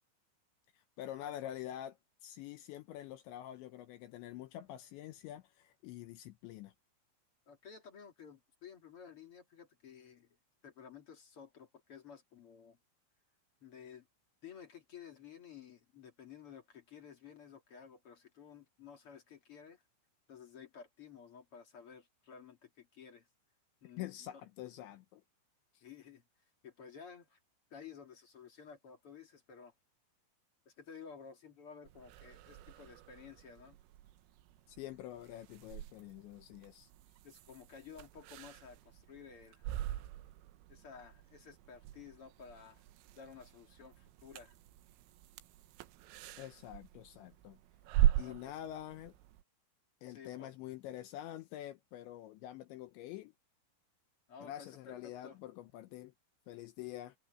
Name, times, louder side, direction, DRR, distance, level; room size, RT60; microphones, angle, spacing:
voice 1, 0.7-6.7 24.0-25.2 25.7-25.8 34.7-36.9 46.4-47.6 48.2-49.2 50.0-53.3 54.4-56.1 56.5-57.2, left 13 dB, 80° left, 2.8 m, -46 dB
voice 2, 7.4-10.4 10.6-12.8 13.6-14.1 14.4-19.8 20.3-23.3 23.8-24.1 25.8-26.2 26.6-27.4 27.7-29.7 30.6-33.8 37.2-39.7 40.7-42.8 43.1-44.6 48.2-48.6 50.0-50.5 54.3-54.9 55.2-55.4, left 7 dB, 45° left, 1.8 m, -54 dB
sound 1, 31.9-49.4, right 13 dB, 80° right, 3.6 m, -40 dB
omnidirectional pair, 5.9 m